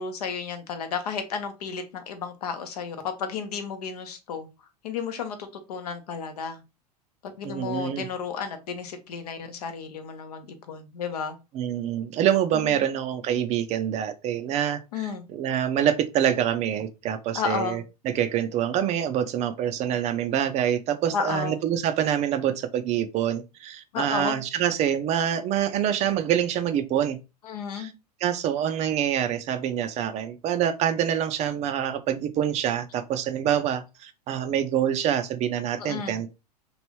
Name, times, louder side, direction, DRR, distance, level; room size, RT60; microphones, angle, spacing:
voice 1, 0.0-4.5 4.8-6.6 7.4-11.3 12.5-12.8 14.9-15.2 17.3-17.8 21.1-21.6 23.9-24.4 27.4-27.9 35.8-36.2, left 6 dB, 65° left, 0.7 m, -32 dB
voice 2, 7.4-8.0 11.5-27.2 27.7-27.9 28.2-36.3, right 10 dB, 35° right, 0.4 m, -26 dB
3.1 x 2.6 x 3.0 m
figure-of-eight pair, 85°, 21 cm